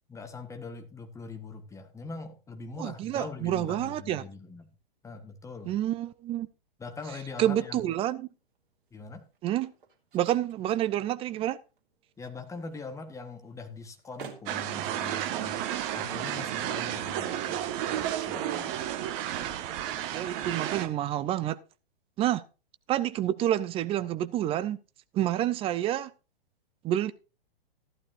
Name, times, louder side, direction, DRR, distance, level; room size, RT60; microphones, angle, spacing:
voice 1, 0.1-4.7 5.0-5.7 6.8-7.9 8.9-9.2 12.2-15.6 15.9-18.8, left 3 dB, 10° left, 1.5 m, -42 dB
voice 2, 2.8-4.2 5.7-6.5 7.4-8.3 9.4-9.7 10.1-11.6 20.1-21.6 22.2-22.4 22.9-24.8 25.1-26.1 26.8-27.1, right 12 dB, 20° right, 0.6 m, -28 dB
sound 1, 8.3-17.6, right 6 dB, 60° right, 2.6 m, -55 dB
sound 2, 14.5-20.9, right 11 dB, 35° right, 1.4 m, -32 dB
14.0 x 12.0 x 2.5 m
figure-of-eight pair, 110°, 30 cm